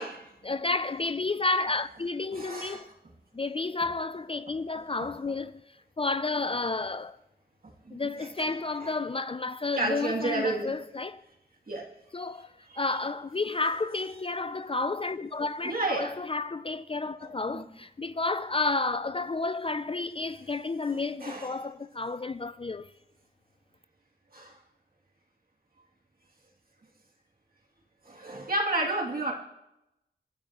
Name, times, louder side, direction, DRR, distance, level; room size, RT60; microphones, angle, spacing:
voice 1, 0.4-2.9 3.3-5.6 6.0-7.2 7.9-11.2 12.1-12.5 12.8-22.9, left 3 dB, 30° left, 0.4 m, -31 dB
voice 2, 2.3-2.8 4.7-5.1 7.8-8.5 8.8-8.9 9.8-10.7 11.7-11.8 12.7-13.0 15.6-16.1 17.2-17.6 21.2-21.5 24.3-24.6 28.0-29.3, right 2 dB, 50° right, 2.7 m, -32 dB
22.0 x 11.0 x 3.0 m
wide cardioid pair, 100°, 19 cm